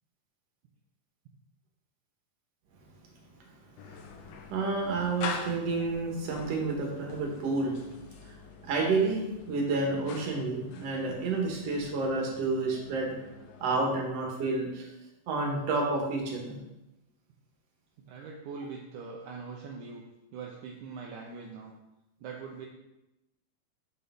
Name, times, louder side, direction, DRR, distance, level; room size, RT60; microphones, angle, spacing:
sound 1, 3.8-14.0, left 5 dB, 75° left, 1.9 m, -44 dB
voice 1, 4.5-7.8 8.2-8.4 8.6-13.1 13.6-14.9 15.3-16.6, right 3 dB, 55° right, -1 dB, 2.1 m, -30 dB
voice 2, 18.0-20.0 20.3-21.7 22.2-22.7, right 5 dB, 80° right, 0 dB, 1.8 m, -42 dB
6.6 x 6.4 x 3.5 m, 0.95 s
omnidirectional pair, 4.1 m